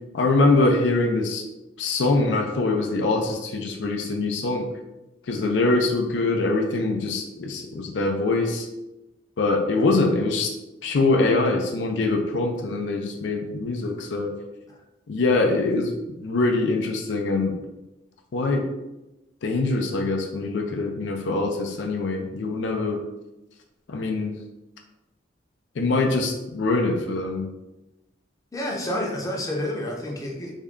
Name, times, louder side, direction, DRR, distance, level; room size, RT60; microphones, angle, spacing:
voice 1, 0.1-1.4 1.8-4.7 5.3-8.7 9.4-10.5 10.8-14.3 15.1-15.9 16.2-17.6 18.3-18.6 19.4-23.0 23.9-24.3 25.8-27.5, left 3 dB, 80° left, 2 dB, 0.5 m, -23 dB
voice 2, 28.5-30.5, left 1 dB, 20° left, -1 dB, 0.6 m, -29 dB
3.5 x 2.2 x 3.6 m, 1.0 s
head